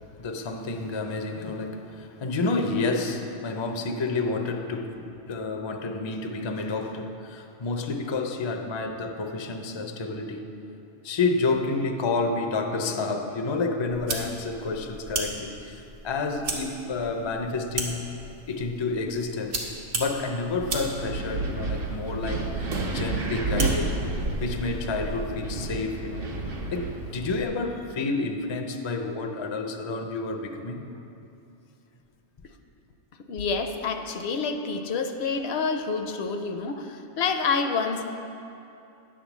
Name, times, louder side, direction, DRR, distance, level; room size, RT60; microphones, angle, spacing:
voice 1, 0.2-10.4 11.0-18.1 18.5-22.7 22.9-23.9 24.4-30.9, left 3 dB, 40° left, 4 dB, 0.4 m, -29 dB
sound 1, 13.9-25.3, right 2 dB, 85° right, 1.4 m, -36 dB
Wind, 20.6-27.4, right 2 dB, 60° right, 1.0 m, -31 dB
voice 2, 33.3-38.0, left 5 dB, 70° left, 6 dB, 0.8 m, -28 dB
10.0 x 3.7 x 7.1 m, 2.7 s
omnidirectional pair, 1.1 m